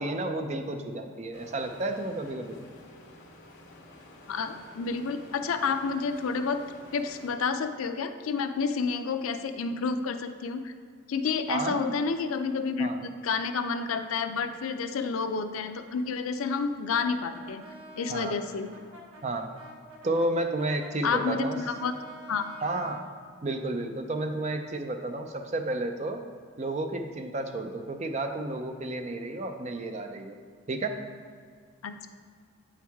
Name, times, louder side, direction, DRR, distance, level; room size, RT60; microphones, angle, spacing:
voice 1, 0.0-2.6 11.5-11.9 12.8-13.0 18.1-18.4 19.2-19.5 20.0-21.6 22.6-23.0 23.4-26.2 26.6-30.3 30.7-30.9, right 2 dB, 35° right, 5 dB, 0.4 m, -31 dB
sound 1, 1.3-7.3, left 1 dB, 60° left, 1.3 m, -51 dB
voice 2, 4.3-6.6 6.9-10.7 11.1-17.6 18.0-18.7 21.0-21.9 22.3-22.4 31.8-31.9, left 5 dB, 85° left, 8 dB, 0.4 m, -30 dB
Brass instrument, 16.9-23.1, right 1 dB, 80° right, 1.2 m, -48 dB
8.4 x 4.6 x 3.5 m, 2.1 s
head